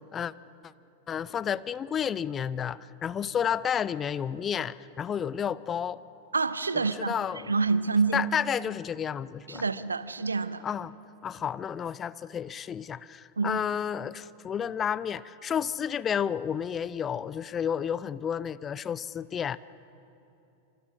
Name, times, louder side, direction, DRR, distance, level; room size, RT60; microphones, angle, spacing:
voice 1, 1.1-6.0 7.0-7.5 8.1-9.6 10.6-10.9 11.2-19.6, left 8 dB, 25° left, 0.5 m, -31 dB
voice 2, 6.3-7.2 7.5-8.3 9.5-10.6 13.4-13.6, right 4 dB, 75° right, 0.8 m, -27 dB
27.0 x 25.0 x 6.4 m
figure-of-eight pair, 90°, 0 cm